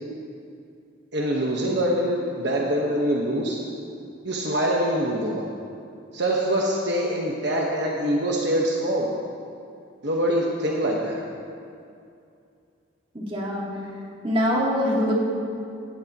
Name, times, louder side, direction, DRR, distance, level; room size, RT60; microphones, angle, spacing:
voice 1, 1.1-3.6 4.2-5.5 6.1-9.1 10.0-11.2, equal, 55° right, -2 dB, 1.3 m, -24 dB
voice 2, 13.1-13.7 14.2-15.1, equal, 25° right, -3 dB, 2.1 m, -23 dB
17.0 x 14.0 x 3.0 m, 2.5 s
head